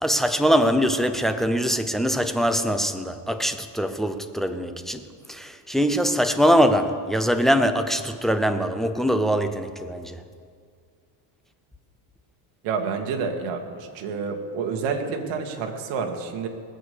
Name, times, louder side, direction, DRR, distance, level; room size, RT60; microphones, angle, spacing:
voice 1, 0.0-10.2, equal, ahead, 0.4 m, -23 dB
voice 2, 12.6-16.5, right 5 dB, 65° right, 1.9 m, -29 dB
20.0 x 8.2 x 6.8 m
cardioid pair, 140°, 48 cm